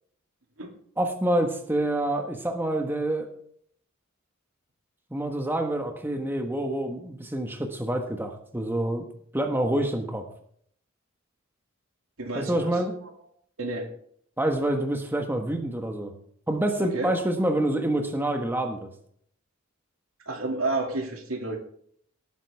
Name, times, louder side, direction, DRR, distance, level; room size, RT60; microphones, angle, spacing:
voice 1, 1.0-3.3 5.1-9.0 9.3-10.2 12.3-12.9 14.4-16.1 16.5-18.9, right 1 dB, 10° right, 4 dB, 1.4 m, -27 dB
voice 2, 12.2-13.1 13.6-13.9 16.8-17.1 20.3-21.6, right 2 dB, 85° right, 3 dB, 2.5 m, -31 dB
18.5 x 9.3 x 3.5 m, 0.64 s
head